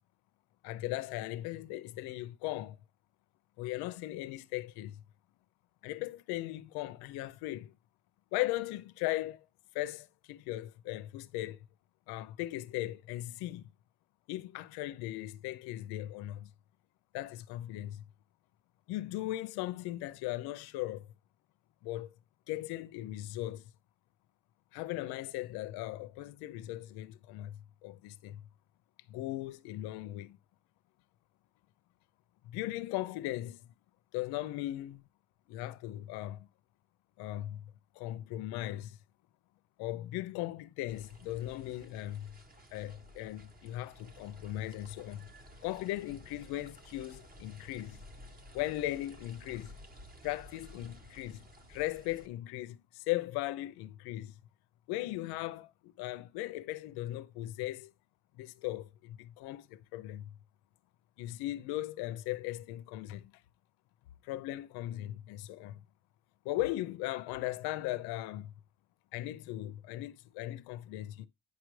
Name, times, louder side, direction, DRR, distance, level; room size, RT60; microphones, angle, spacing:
voice 1, 0.6-2.8 3.6-5.0 5.8-7.7 8.3-9.4 9.7-11.6 12.1-13.7 14.3-16.5 17.1-18.0 18.9-21.1 21.8-22.1 22.5-23.6 24.7-28.4 29.1-30.4 32.4-33.6 34.1-35.0 35.5-36.5 37.2-37.6 37.9-39.0 39.8-42.3 42.7-45.3 45.6-48.0 48.5-49.7 50.2-54.3 54.9-57.9 58.4-60.2 61.2-63.3 64.2-65.8 66.4-68.5 69.1-71.3, left 15 dB, 80° left, 0.8 m, -38 dB
sound 1, 40.9-52.3, equal, 25° right, 1.5 m, -54 dB
9.7 x 5.0 x 3.2 m
supercardioid pair, 90°, 37 cm